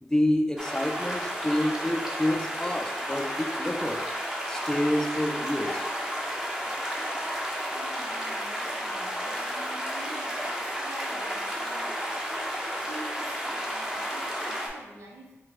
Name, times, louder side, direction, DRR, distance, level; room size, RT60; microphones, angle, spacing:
voice 1, 0.0-4.1 4.5-5.8, left 1 dB, 15° left, 3 dB, 0.5 m, -28 dB
sound 1, 0.6-14.7, equal, 15° right, 0.9 m, -32 dB
voice 2, 7.7-12.1 12.8-15.3, right 2 dB, 80° right, 0 dB, 0.7 m, -47 dB
4.4 x 2.2 x 4.1 m, 1.0 s
cardioid pair, 55°, 5 cm